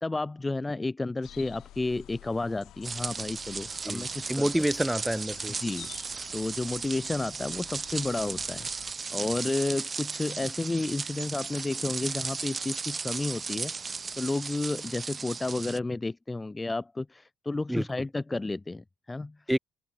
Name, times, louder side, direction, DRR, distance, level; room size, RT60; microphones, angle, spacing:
voice 1, 0.0-4.4 5.6-5.9 6.3-8.7 9.1-13.7 14.2-19.4, left 2 dB, 20° left, 1.5 m, -31 dB
sound 1, 1.2-8.9, left 13 dB, 80° left, 3.5 m, -50 dB
sound 2, 2.8-15.8, right 5 dB, 35° right, 2.9 m, -36 dB
voice 2, 3.8-5.6 17.7-17.8 19.5-19.6, right 1 dB, 5° right, 2.9 m, -28 dB
open air
cardioid pair, 90°, 0 cm